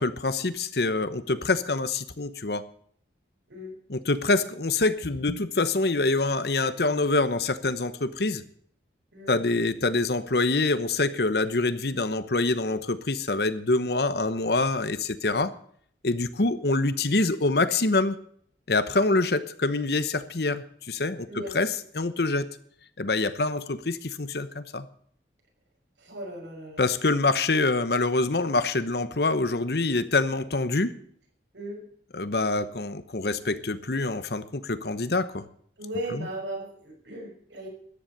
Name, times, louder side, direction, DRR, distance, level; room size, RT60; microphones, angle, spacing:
voice 1, 0.0-2.6 3.9-8.4 9.3-15.5 16.0-18.2 18.7-21.3 21.5-21.7 21.9-22.5 23.0-24.9 26.8-30.9 32.1-35.4 36.1-36.3, left 3 dB, 60° left, 13 dB, 1.0 m, -25 dB
voice 2, 26.0-26.8 31.5-31.8 35.8-37.7, right 1 dB, 85° right, 1 dB, 5.9 m, -37 dB
13.5 x 10.5 x 6.7 m, 0.62 s
head